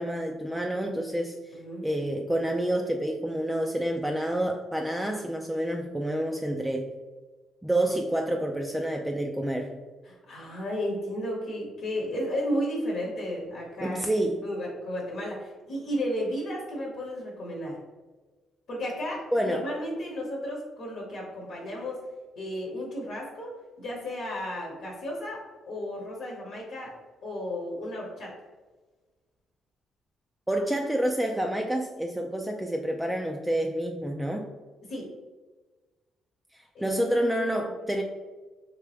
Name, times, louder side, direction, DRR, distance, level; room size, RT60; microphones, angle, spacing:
voice 1, 0.0-1.5 1.8-6.9 7.6-9.8 13.8-14.4 19.3-19.7 30.5-34.5 36.5-38.0, right 1 dB, 5° right, 2 dB, 0.3 m, -28 dB
voice 2, 1.5-1.8 10.1-14.0 14.4-17.8 18.7-22.0 22.4-23.5 23.8-25.4 25.7-26.9 27.2-28.3 34.9-35.1 36.7-36.9, equal, 70° left, -3 dB, 1.0 m, -33 dB
3.3 x 2.8 x 3.3 m, 1.3 s
cardioid pair, 90°, 0 cm